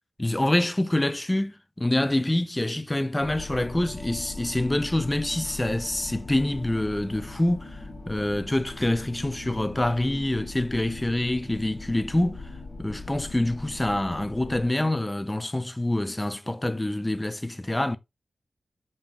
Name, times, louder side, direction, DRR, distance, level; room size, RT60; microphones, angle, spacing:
voice 1, 0.2-12.5 12.8-18.0, left 1 dB, 15° left, 0.4 m, -26 dB
sound 1, 3.2-14.7, left 3 dB, 55° left, 1.5 m, -40 dB
5.2 x 2.3 x 2.9 m
wide cardioid pair, 70°, 0 cm